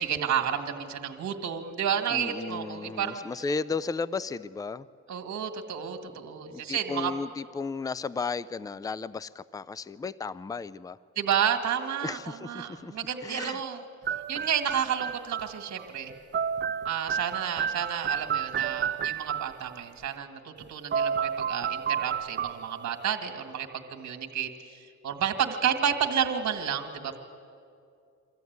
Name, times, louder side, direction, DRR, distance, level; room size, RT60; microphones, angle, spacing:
voice 1, 0.0-3.2 5.1-7.1 11.2-13.8 14.3-16.1 16.9-27.2, right 8 dB, 60° right, 5 dB, 1.8 m, -31 dB
voice 2, 2.1-4.9 6.5-11.0 12.0-12.9 13.2-13.6, left 4 dB, 10° left, 18 dB, 0.4 m, -34 dB
sound 1, 14.1-19.7 20.6-20.7 20.9-23.0, right 7 dB, 40° right, 0.6 m, -31 dB
24.0 x 14.5 x 9.4 m, 2.5 s
cardioid pair, 90°, 30 cm